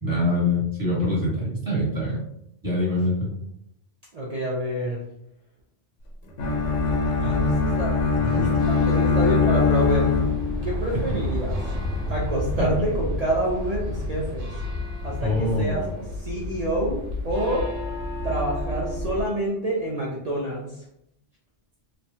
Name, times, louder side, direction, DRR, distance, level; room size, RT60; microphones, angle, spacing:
voice 1, 0.0-2.2 2.6-3.3 8.2-8.5 12.6-12.8 15.2-16.0, left 1 dB, 20° right, -7 dB, 1.1 m, -25 dB
voice 2, 4.1-5.0 7.2-10.1 10.6-11.5 12.1-14.5 15.0-15.8 16.2-17.6 18.2-20.8, right 1 dB, 60° right, -4 dB, 0.4 m, -27 dB
Bowed string instrument, 6.4-10.8, left 4 dB, 75° left, 1.0 m, -22 dB
sound 1, 6.4-19.2, left 2 dB, 80° right, 1.1 m, -31 dB
3.1 x 2.2 x 2.7 m, 0.78 s
omnidirectional pair, 1.3 m